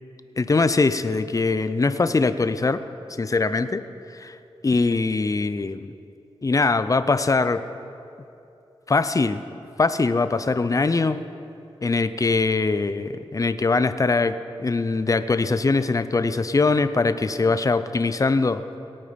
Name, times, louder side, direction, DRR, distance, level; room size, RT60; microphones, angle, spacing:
voice 1, 0.4-2.8 3.2-3.8 4.1-4.4 4.6-5.9 6.4-7.6 8.9-9.4 9.8-11.2 11.8-18.6, left 3 dB, 35° left, 12 dB, 0.6 m, -22 dB
18.0 x 8.9 x 5.2 m, 2.7 s
cardioid pair, 60°, 10 cm